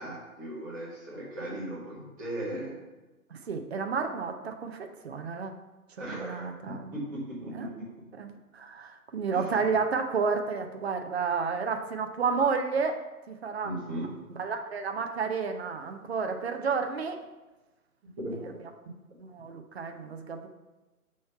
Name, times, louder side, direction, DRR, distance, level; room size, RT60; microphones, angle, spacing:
voice 1, 0.0-2.8 6.0-7.9 9.3-9.6 13.6-14.1 18.2-18.4, right 1 dB, 15° right, -7 dB, 0.9 m, -37 dB
voice 2, 3.3-4.8 5.0-5.5 6.2-6.9 7.5-7.7 8.2-13.0 13.3-13.7 14.4-17.2 19.2-20.5, right 5 dB, 45° right, 5 dB, 0.5 m, -31 dB
5.8 x 3.1 x 5.5 m, 1.1 s
figure-of-eight pair, 145°, 45 cm